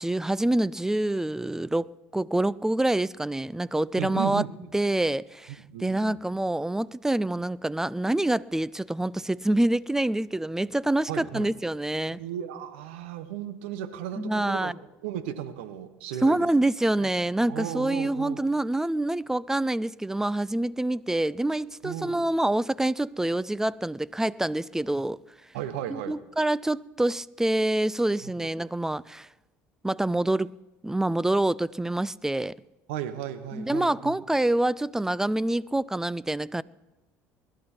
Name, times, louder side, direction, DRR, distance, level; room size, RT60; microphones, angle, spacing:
voice 1, 0.0-4.4 4.7-12.2 14.2-14.7 16.2-25.2 25.9-29.3 29.8-30.5 30.8-32.5 33.5-36.6, right 1 dB, 10° right, 0.4 m, -26 dB
voice 2, 4.0-4.5 5.7-6.2 11.1-11.5 12.1-14.7 15.0-16.5 17.0-17.1 17.5-18.4 21.8-22.2 25.5-26.1 28.2-28.5 32.9-34.1, right 11 dB, 85° right, 1.0 m, -35 dB
20.5 x 12.0 x 4.4 m
supercardioid pair, 80°, 6 cm